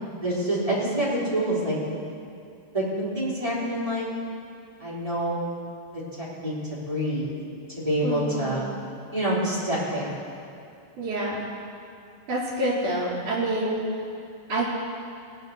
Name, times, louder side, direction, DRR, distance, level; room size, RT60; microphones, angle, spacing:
voice 1, 0.2-1.8 2.7-4.1 4.8-5.4 5.9-7.3 7.8-8.7 9.1-10.1, right 1 dB, 10° right, -8 dB, 2.8 m, -27 dB
voice 2, 8.0-8.6 11.0-11.5 12.3-13.8 14.5-14.7, right 1 dB, 40° right, -5 dB, 4.6 m, -27 dB
18.5 x 9.5 x 6.4 m, 2.5 s
omnidirectional pair, 4.7 m